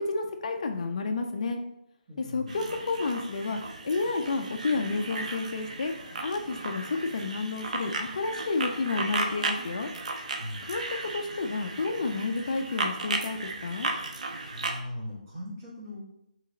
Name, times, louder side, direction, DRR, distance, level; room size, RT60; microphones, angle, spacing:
voice 1, 0.0-1.6 2.2-5.9 6.2-9.9 10.6-13.9, left 3 dB, 45° left, 4 dB, 0.3 m, -30 dB
voice 2, 2.1-2.7 10.4-10.9 14.5-16.0, left 1 dB, 20° right, -8 dB, 1.1 m, -40 dB
sound 1, 2.5-14.8, right 3 dB, 50° right, 0.5 m, -35 dB
3.2 x 2.8 x 3.8 m, 0.81 s
hypercardioid pair, 170°, 5 cm